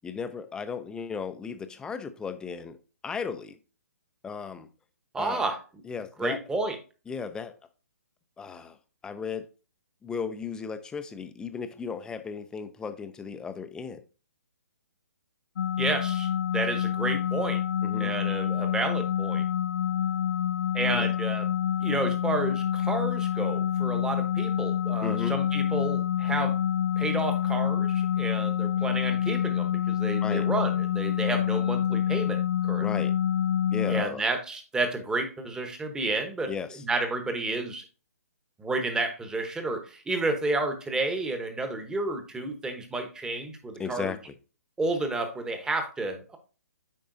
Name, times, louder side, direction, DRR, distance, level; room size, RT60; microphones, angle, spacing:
voice 1, 0.0-2.8 3.0-3.6 4.2-4.7 5.2-5.5 5.8-6.4 7.1-7.5 8.4-8.8 9.0-9.5 10.0-14.0 17.8-18.1 20.9-21.1 25.0-25.4 30.2-30.5 32.8-33.1 33.7-34.2 36.5-36.8 43.8-44.3, left 5 dB, 10° left, 0.5 m, -35 dB
voice 2, 5.1-5.6 6.2-6.8 15.8-17.6 18.0-19.4 20.7-21.5 21.8-26.6 27.0-33.1 33.9-37.8 38.6-44.1 44.8-46.4, right 2 dB, 10° right, 1.0 m, -31 dB
sound 1, 15.6-34.0, left 10 dB, 65° left, 0.4 m, -27 dB
8.7 x 5.4 x 2.6 m
hypercardioid pair, 135°, 9 cm